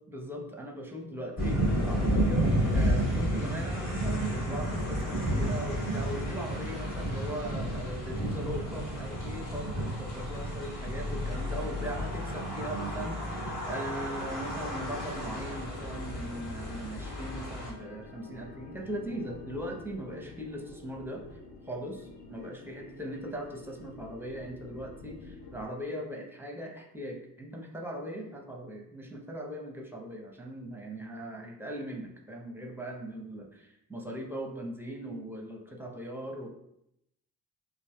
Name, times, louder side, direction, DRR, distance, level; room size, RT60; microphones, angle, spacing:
voice 1, 0.1-21.4 21.7-36.5, equal, 5° right, 1 dB, 0.6 m, -39 dB
sound 1, 1.4-17.7, equal, 40° left, 1.4 m, -31 dB
sound 2, 12.8-25.7, left 3 dB, 60° left, 0.7 m, -50 dB
4.1 x 2.5 x 2.2 m, 0.79 s
hypercardioid pair, 50°, 47 cm